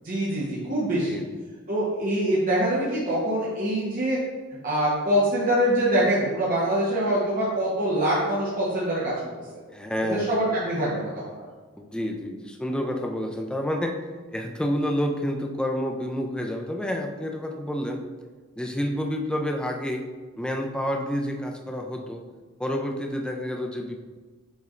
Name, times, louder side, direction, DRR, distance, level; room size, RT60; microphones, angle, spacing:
voice 1, 0.0-1.2 1.7-4.2 4.6-9.1 9.5-9.6 10.0-11.4, right 1 dB, 40° right, -7 dB, 0.9 m, -24 dB
voice 2, 9.7-10.3 11.8-14.0 14.3-18.0 18.6-20.0 20.4-22.2 22.6-24.0, equal, 5° left, 2 dB, 0.3 m, -29 dB
6.4 x 3.1 x 2.4 m, 1.4 s
head